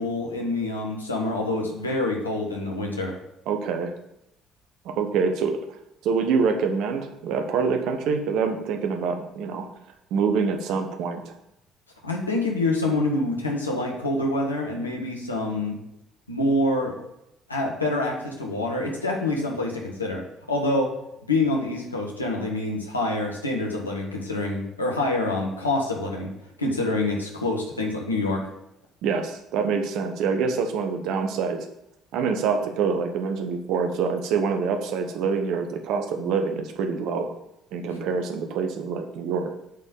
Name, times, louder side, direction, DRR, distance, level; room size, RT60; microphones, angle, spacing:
voice 1, 0.0-3.1 12.0-15.8 16.3-16.9 17.5-20.9 21.3-26.3 26.6-28.5, left 2 dB, 90° left, -1 dB, 1.4 m, -26 dB
voice 2, 3.5-3.9 4.8-5.6 6.0-9.7 10.1-11.3 29.0-31.6 32.1-37.3 37.7-39.5, right 5 dB, 60° right, 6 dB, 1.1 m, -25 dB
8.0 x 4.3 x 7.1 m, 0.83 s
figure-of-eight pair, 50°, 0 cm